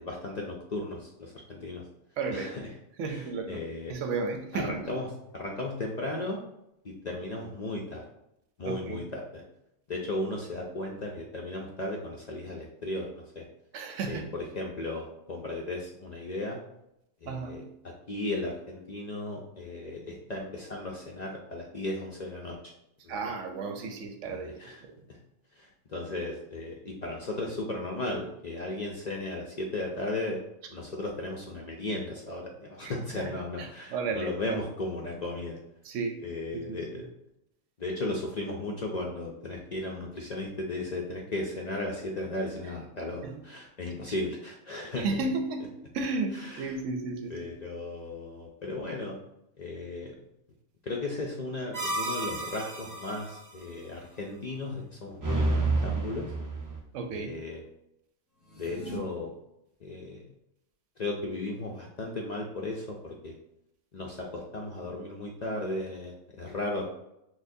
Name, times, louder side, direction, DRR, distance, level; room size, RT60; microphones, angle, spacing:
voice 1, 0.0-1.8 2.3-2.7 3.1-3.9 4.5-5.1 5.3-6.4 6.8-8.0 8.6-9.4 9.9-13.5 14.1-16.6 17.2-22.6 23.0-23.2 24.3-24.8 25.1-25.2 25.5-30.4 30.7-35.6 36.2-37.1 37.8-45.1 46.3-46.8 47.3-49.2 49.6-50.1 50.8-56.3 57.1-57.6 58.6-59.3 59.8-60.2 61.0-63.4 63.9-66.9, left 2 dB, 55° left, -1 dB, 0.4 m, -35 dB
voice 2, 2.2-2.6 3.0-3.6 3.9-4.9 8.6-9.0 13.7-14.3 17.3-17.6 23.1-24.5 32.8-33.3 33.6-34.6 35.8-36.2 36.5-37.0 43.2-43.4 45.0-45.7 45.9-47.3 56.9-57.3, right 4 dB, 80° right, 4 dB, 1.0 m, -33 dB
sound 1, 51.7-53.4 55.2-56.8, right 2 dB, 30° right, 0.4 m, -30 dB
sound 2, 58.4-59.0, right 1 dB, ahead, 1.4 m, -43 dB
6.2 x 2.1 x 2.6 m, 0.81 s
omnidirectional pair, 1.3 m